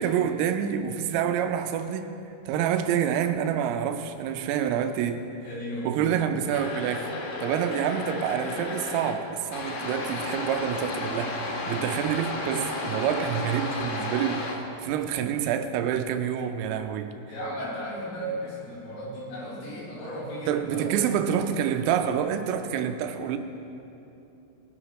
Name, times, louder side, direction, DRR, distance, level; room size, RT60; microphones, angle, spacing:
voice 1, 0.0-2.2 2.5-5.3 5.9-7.1 7.4-17.1 20.5-23.4, right 9 dB, 85° right, 8 dB, 3.3 m, -27 dB
voice 2, 5.4-6.2 17.3-21.1, equal, 90° left, -8 dB, 6.0 m, -35 dB
sound 1, 6.5-9.1 9.5-14.5, left 2 dB, 70° left, 2.6 m, -33 dB
19.5 x 9.6 x 3.0 m, 3.0 s
omnidirectional pair, 5.9 m